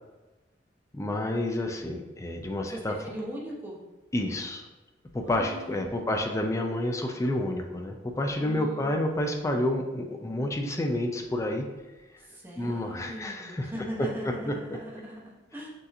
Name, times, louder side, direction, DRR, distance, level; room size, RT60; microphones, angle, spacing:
voice 1, 0.9-2.9 4.1-4.6 5.1-11.7 12.6-13.7 14.5-14.6, left 1 dB, 15° left, 3 dB, 0.3 m, -29 dB
voice 2, 2.6-3.8 5.2-6.1 8.4-8.9 12.2-15.7, equal, 10° right, -5 dB, 0.9 m, -40 dB
6.3 x 2.8 x 2.6 m, 1.1 s
head